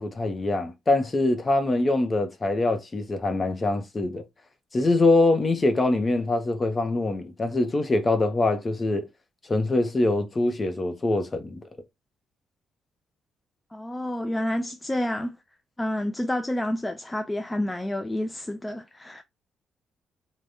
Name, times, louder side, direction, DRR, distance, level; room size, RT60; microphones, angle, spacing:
voice 1, 0.0-4.2 4.7-9.0 9.5-11.6, left 2 dB, 30° left, 0.7 m, -24 dB
voice 2, 13.7-15.4 15.8-19.2, left 1 dB, 15° left, 0.3 m, -29 dB
3.4 x 2.2 x 2.6 m
cardioid pair, 90°, 0 cm